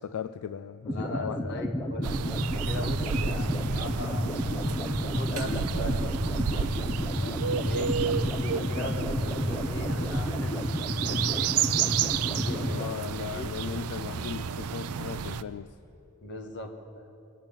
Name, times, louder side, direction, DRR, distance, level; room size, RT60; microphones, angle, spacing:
voice 1, 0.0-1.6 5.3-5.7 7.1-7.4 12.6-15.8 16.0-16.2, left 8 dB, 80° left, 13 dB, 0.4 m, -38 dB
voice 2, 0.9-2.1 2.5-4.3 5.0-6.1 6.4-6.8 7.5-7.9 8.3-10.7 11.0-11.5 12.2-12.8 13.3-13.5 16.2-17.1, left 1 dB, 55° left, 3 dB, 1.6 m, -39 dB
sound 1, 0.9-12.9, left 1 dB, 15° left, 0.7 m, -31 dB
sound 2, 2.0-15.4, right 7 dB, 85° right, 0.5 m, -31 dB
21.5 x 7.4 x 8.8 m, 2.8 s
head